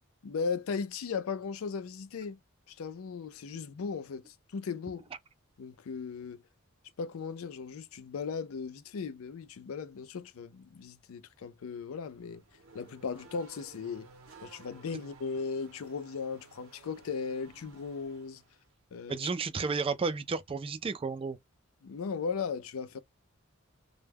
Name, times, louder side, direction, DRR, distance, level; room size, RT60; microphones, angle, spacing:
voice 1, 0.2-2.4 2.7-5.0 5.6-6.4 7.0-12.4 12.7-14.1 14.4-18.4 18.9-19.2 21.8-23.0, left 5 dB, 75° left, 0.4 m, -37 dB
Race car auto racing / Accelerating revving vroom, 12.0-18.7, right 4 dB, 75° right, 0.7 m, -55 dB
voice 2, 19.1-21.4, right 4 dB, 25° right, 0.4 m, -32 dB
2.2 x 2.2 x 3.3 m
head